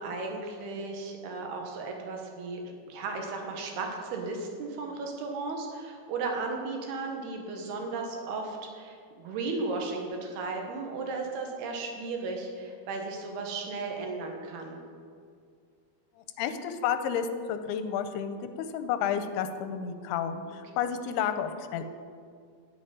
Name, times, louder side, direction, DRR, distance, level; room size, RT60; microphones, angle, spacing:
voice 1, 0.0-14.8, right 3 dB, 75° right, 2 dB, 3.4 m, -35 dB
voice 2, 16.4-21.8, left 8 dB, 90° left, 9 dB, 2.7 m, -31 dB
10.0 x 8.2 x 8.9 m, 2.2 s
omnidirectional pair, 4.6 m